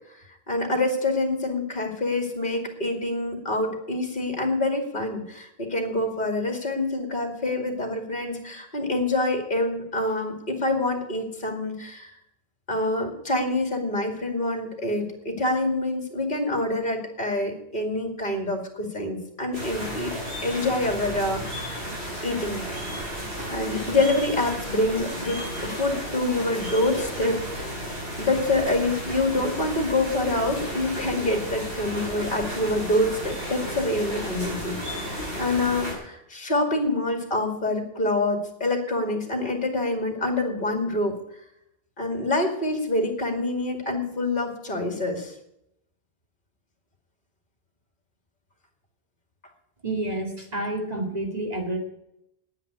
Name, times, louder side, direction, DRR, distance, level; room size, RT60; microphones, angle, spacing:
voice 1, 0.5-12.2 12.7-20.1 20.4-21.7 22.2-22.6 23.5-27.4 28.2-41.2 42.0-45.3, left 2 dB, 50° left, 4 dB, 2.5 m, -26 dB
sound 1, 19.5-35.9, equal, 80° right, 5.7 m, -33 dB
voice 2, 49.8-51.8, right 1 dB, 40° right, 2 dB, 2.4 m, -29 dB
9.8 x 9.3 x 9.5 m, 0.81 s
omnidirectional pair, 1.1 m